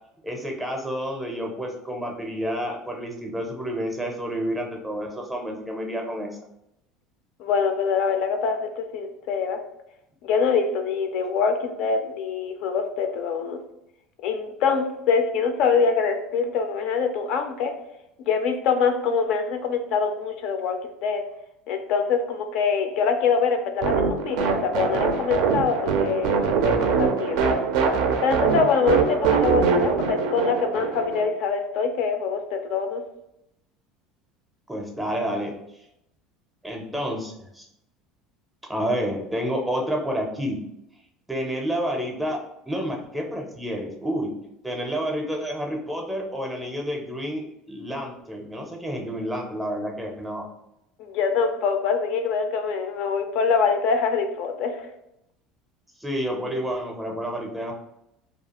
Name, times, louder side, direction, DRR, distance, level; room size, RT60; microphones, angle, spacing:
voice 1, 0.2-6.4 34.7-35.5 35.8-35.9 36.6-37.7 38.7-40.6 41.3-42.4 42.6-44.3 44.6-50.5 56.0-57.7, equal, 5° right, 1 dB, 0.5 m, -29 dB
voice 2, 7.4-9.6 10.2-13.6 14.2-17.7 18.3-21.2 21.7-27.6 28.2-33.0 51.0-54.8, left 5 dB, 60° left, 6 dB, 0.3 m, -24 dB
sound 1, 23.8-31.3, right 5 dB, 70° right, 0.4 m, -23 dB
2.4 x 2.3 x 2.8 m, 0.82 s
cardioid pair, 135°, 0 cm